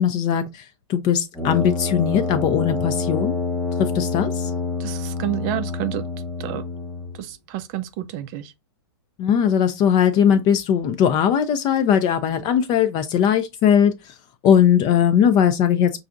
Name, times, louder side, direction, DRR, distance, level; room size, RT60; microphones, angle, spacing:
voice 1, 0.0-3.4 3.8-4.5 9.2-14.1 14.4-16.0, left 8 dB, 30° left, 0.5 m, -19 dB
Brass instrument, 1.3-7.2, left 4 dB, 15° left, 0.9 m, -27 dB
voice 2, 4.8-6.0 6.4-6.6 7.2-8.5, right 13 dB, 40° right, 0.5 m, -29 dB
5.6 x 2.6 x 2.4 m
hypercardioid pair, 125°, 14 cm